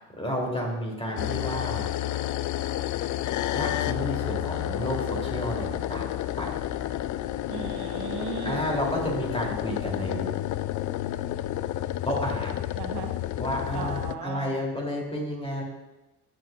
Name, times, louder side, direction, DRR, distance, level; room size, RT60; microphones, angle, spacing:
voice 1, 0.1-2.3 3.5-6.1 6.4-6.6 8.4-10.4 12.0-12.6 13.4-15.6, equal, 15° left, -1 dB, 2.8 m, -31 dB
sound 1, 1.1-14.1, left 13 dB, 45° left, 0.4 m, -30 dB
voice 2, 7.5-8.6 12.7-13.1 13.7-14.6, right 6 dB, 60° right, 3 dB, 1.5 m, -36 dB
16.0 x 6.2 x 2.3 m, 1.0 s
hypercardioid pair, 55°, 45 cm